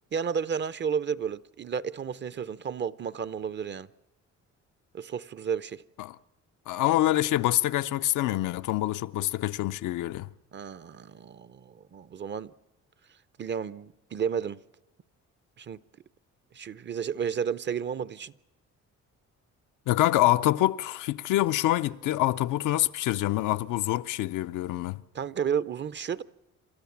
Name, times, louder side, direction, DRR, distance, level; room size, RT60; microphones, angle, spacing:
voice 1, 0.1-3.9 4.9-5.8 10.5-12.5 13.4-14.6 15.6-15.8 16.5-18.3 25.1-26.2, right 7 dB, 40° right, 0.6 m, -32 dB
voice 2, 6.7-10.3 19.9-25.0, left 15 dB, 85° left, 0.6 m, -26 dB
28.5 x 13.0 x 7.2 m
cardioid pair, 90°, 30 cm